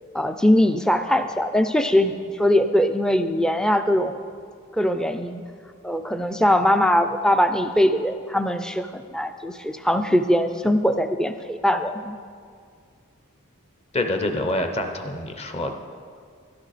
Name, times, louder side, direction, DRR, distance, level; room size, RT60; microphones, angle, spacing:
voice 1, 0.1-4.2 4.7-5.4 5.8-12.2, left 1 dB, 5° left, 8 dB, 0.4 m, -21 dB
voice 2, 13.9-15.7, left 1 dB, 25° left, 6 dB, 0.7 m, -26 dB
13.0 x 12.0 x 4.1 m, 2.1 s
head